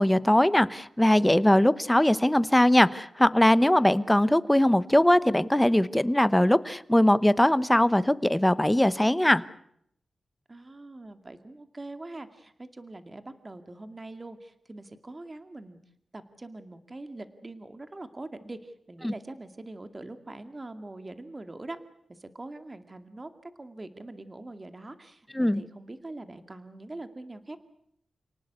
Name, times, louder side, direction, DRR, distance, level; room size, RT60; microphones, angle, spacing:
voice 1, 0.0-9.4 19.0-19.1 25.3-25.6, left 1 dB, 10° left, 16 dB, 1.0 m, -21 dB
voice 2, 10.5-15.8 16.1-21.8 22.1-27.6, right 2 dB, 30° right, 9 dB, 2.2 m, -43 dB
29.0 x 19.0 x 8.1 m, 0.72 s
wide cardioid pair, 80°, 0 cm